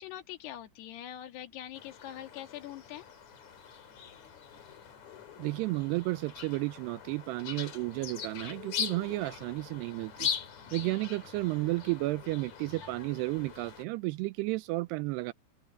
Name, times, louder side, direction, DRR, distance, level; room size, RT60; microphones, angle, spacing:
voice 1, 0.0-3.1 10.7-11.1, left 12 dB, 65° left, 3.9 m, -44 dB
sound 1, 1.7-13.8, left 7 dB, 45° left, 3.2 m, -41 dB
voice 2, 5.4-10.3 10.7-15.3, right 21 dB, 85° right, 2.5 m, -32 dB
open air
omnidirectional pair, 5.3 m